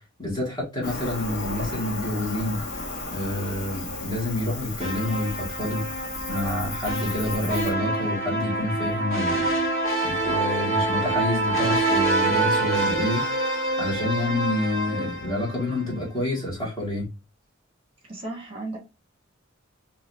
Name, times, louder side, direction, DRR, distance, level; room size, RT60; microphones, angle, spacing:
voice 1, 0.2-2.6 3.1-5.8 6.3-9.5 10.0-13.2 13.8-17.1, left 1 dB, 20° left, 1.9 m, -28 dB
Cricket, 0.8-7.7, left 2 dB, 55° left, 1.2 m, -34 dB
sound 1, 4.8-16.0, right 2 dB, 35° left, 2.1 m, -26 dB
voice 2, 18.1-18.8, right 2 dB, 30° right, 1.3 m, -34 dB
4.0 x 2.9 x 2.6 m
head